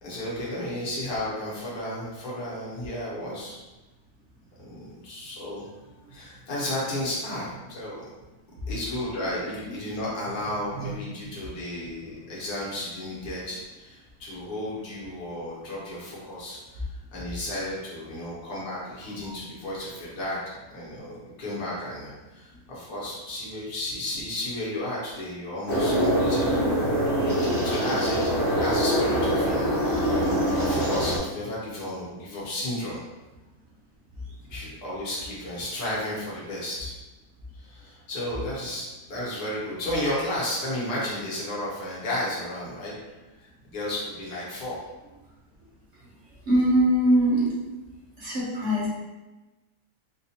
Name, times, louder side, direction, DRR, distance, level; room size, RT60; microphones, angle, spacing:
voice 1, 0.0-3.6 4.6-5.7 6.1-8.0 8.7-20.4 20.7-26.5 27.4-28.2 28.6-29.7 30.5-33.0 34.5-36.9 37.6-42.9 43.4-44.8, left 1 dB, 70° left, -6 dB, 1.6 m, -33 dB
sound 1, 25.7-31.2, equal, 50° left, 0.8 m, -24 dB
voice 2, 46.5-47.5 48.2-48.9, right 1 dB, 55° right, -6 dB, 1.0 m, -23 dB
4.0 x 2.5 x 2.8 m, 1.1 s
omnidirectional pair, 1.8 m